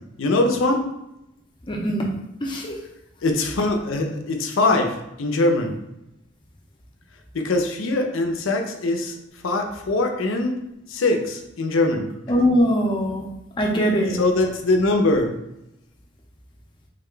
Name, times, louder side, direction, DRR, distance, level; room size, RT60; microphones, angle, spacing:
voice 1, 0.2-0.8 3.2-5.7 7.3-9.1 9.4-10.6 10.9-12.1 14.1-15.4, left 2 dB, 75° left, 4 dB, 0.5 m, -22 dB
voice 2, 1.7-2.1 2.4-2.8 12.3-13.2 13.6-14.2, equal, 25° left, -1 dB, 0.5 m, -21 dB
3.5 x 2.2 x 3.7 m, 0.86 s
head